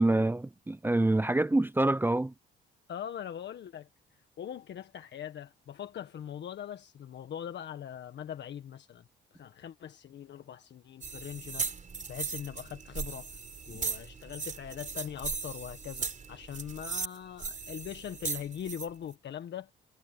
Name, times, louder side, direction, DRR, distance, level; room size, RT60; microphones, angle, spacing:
voice 1, 0.0-2.3, right 2 dB, 10° right, 0.6 m, -26 dB
voice 2, 2.9-9.1 9.3-11.7 12.1-13.4 13.7-19.7, left 9 dB, 65° left, 1.6 m, -41 dB
sound 1, 11.0-18.9, right 5 dB, 40° right, 4.4 m, -37 dB
cardioid pair, 90°, 20 cm